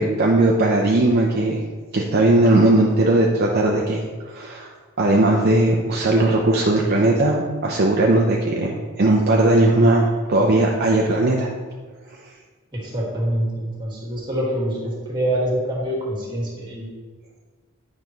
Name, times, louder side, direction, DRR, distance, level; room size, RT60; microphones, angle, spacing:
voice 1, 0.0-1.6 1.9-4.7 5.0-11.5 12.1-12.2, right 2 dB, 45° right, -1 dB, 0.6 m, -18 dB
voice 2, 12.7-16.9, right 1 dB, 20° right, -3 dB, 1.9 m, -25 dB
9.0 x 5.3 x 3.1 m, 1.4 s
head